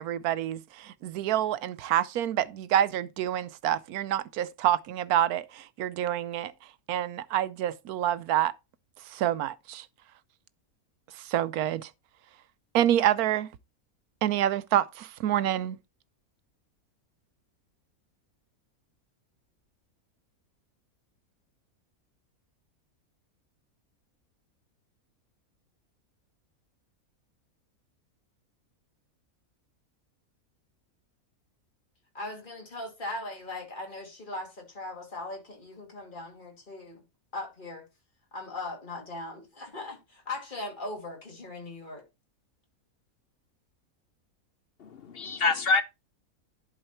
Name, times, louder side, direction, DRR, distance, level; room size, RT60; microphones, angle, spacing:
voice 1, 0.0-6.5 6.9-8.5 9.1-9.9 11.2-11.9 12.7-13.5 14.2-15.8, right 11 dB, 85° right, 1.1 m, -27 dB
voice 2, 32.1-37.0 37.3-37.9 38.3-42.0, left 2 dB, 35° left, 2.8 m, -39 dB
voice 3, 44.8-45.8, left 3 dB, 55° left, 0.7 m, -26 dB
11.0 x 4.8 x 4.3 m
omnidirectional pair, 1.5 m